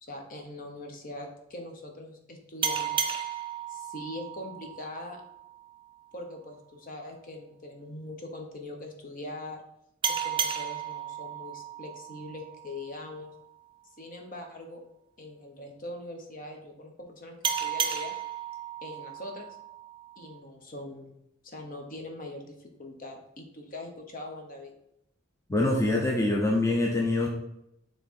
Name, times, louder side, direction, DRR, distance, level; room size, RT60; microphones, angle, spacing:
voice 1, 0.0-3.1 3.7-5.2 6.1-9.6 10.1-13.3 14.0-14.8 15.2-17.3 17.6-18.1 18.8-19.6 20.2-21.1 21.4-24.7, left 1 dB, 45° left, 3 dB, 1.1 m, -42 dB
sound 1, 2.6-5.8 10.0-13.3 17.4-20.4, right 7 dB, 25° right, 0.6 m, -34 dB
voice 2, 25.5-27.3, left 2 dB, 15° left, -1 dB, 0.7 m, -25 dB
6.7 x 3.7 x 4.3 m, 0.80 s
head